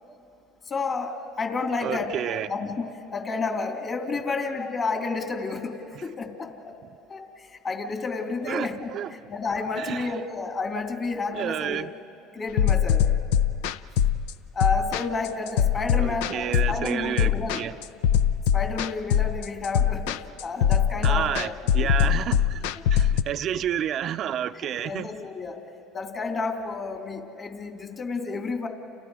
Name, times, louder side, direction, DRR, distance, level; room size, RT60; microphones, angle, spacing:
voice 1, 0.6-6.8 7.1-8.9 9.3-11.8 12.3-13.0 14.5-17.6 18.5-21.5 21.8-22.1 22.8-22.9 24.8-25.6 25.9-28.7, left 4 dB, 35° left, 3.2 m, -31 dB
voice 2, 1.8-2.5 6.0-6.1 8.4-9.1 9.8-10.1 11.3-11.9 16.0-17.7 21.0-25.1, right 10 dB, 50° right, 0.6 m, -30 dB
sound 1, 12.6-23.2, left 9 dB, 80° left, 0.5 m, -23 dB
30.0 x 29.5 x 4.9 m
supercardioid pair, 90°, 0 cm